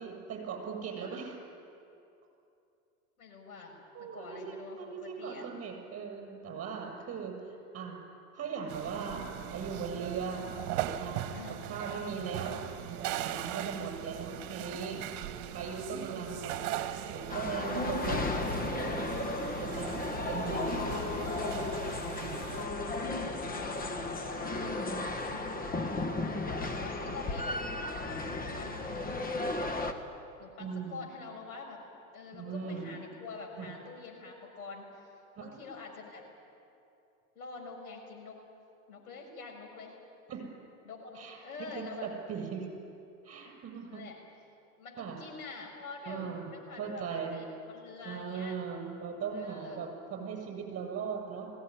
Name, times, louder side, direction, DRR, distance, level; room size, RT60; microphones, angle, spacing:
voice 1, 0.0-1.4 3.9-8.0 8.3-10.5 11.0-11.3 11.7-15.0 15.5-16.5 17.1-18.3 18.7-19.1 19.6-19.9 20.3-20.8 22.2-22.4 30.6-31.0 32.3-32.9 33.6-33.7 35.4-35.5 40.3-40.4 41.2-41.4 41.7-42.7 43.2-44.0 45.0-45.2 46.1-46.5 46.8-47.4 48.0-51.5, right 6 dB, 30° right, 2 dB, 7.2 m, -39 dB
voice 2, 3.2-3.7 4.0-5.5 11.3-11.6 13.5-13.8 15.1-15.4 19.1-19.4 23.6-26.3 26.6-27.6 28.3-29.2 30.4-31.8 32.1-36.2 37.3-38.4 38.9-39.9 40.8-42.1 43.4-43.5 43.9-44.1 44.8-48.6 49.3-49.9, left 4 dB, 80° left, 0 dB, 6.2 m, -46 dB
sound 1, 8.7-22.7, right 11 dB, 55° right, 1.8 m, -39 dB
sound 2, 17.3-29.9, left 2 dB, 20° left, 1.8 m, -34 dB
21.0 x 17.0 x 9.9 m, 2.6 s
hypercardioid pair, 100°, 44 cm